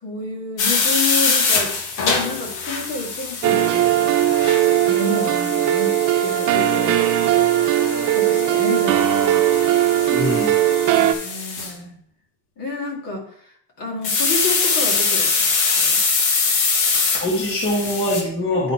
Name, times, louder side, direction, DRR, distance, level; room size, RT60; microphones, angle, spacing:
voice 1, 0.0-4.2 4.9-7.5 8.1-9.1 10.9-12.0 12.6-13.5 13.8-15.5 15.8-16.0, left 2 dB, 55° left, 0 dB, 2.4 m, -30 dB
sound 1, 0.6-11.7 14.0-18.2, left 4 dB, 70° left, 1.7 m, -23 dB
sound 2, 3.4-11.1, right 12 dB, 50° right, 0.8 m, -18 dB
voice 2, 10.1-10.5 17.2-18.7, left 1 dB, 30° left, -2 dB, 1.8 m, -22 dB
10.0 x 3.9 x 4.4 m, 0.65 s
cardioid pair, 120°, 40 cm